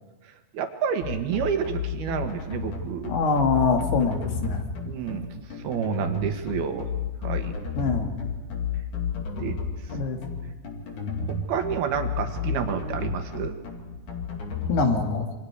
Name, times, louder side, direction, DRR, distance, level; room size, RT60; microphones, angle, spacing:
voice 1, 0.5-3.1 4.9-5.3 5.6-6.9 7.2-7.5 9.4-9.6 11.3-13.5, right 8 dB, 65° right, 6 dB, 3.1 m, -29 dB
sound 1, 1.0-14.7, left 6 dB, 50° left, 3.6 m, -31 dB
voice 2, 3.1-4.6 7.8-8.1 9.9-10.2 14.7-15.3, left 4 dB, 65° left, 3 dB, 3.9 m, -24 dB
28.0 x 24.5 x 4.8 m, 1.1 s
omnidirectional pair, 5.2 m